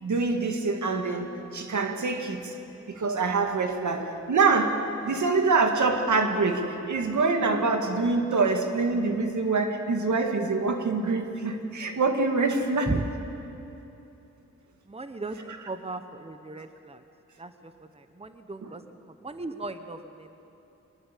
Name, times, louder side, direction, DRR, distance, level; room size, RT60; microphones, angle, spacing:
voice 1, 0.0-2.5 2.9-13.0 15.5-15.7 18.6-18.7, right 3 dB, 80° right, 5 dB, 2.1 m, -25 dB
voice 2, 14.9-17.0 17.4-17.7 18.2-18.8 19.2-20.3, right 2 dB, 20° right, 9 dB, 1.1 m, -36 dB
23.5 x 19.5 x 8.5 m, 2.9 s
cardioid pair, 75°, 29 cm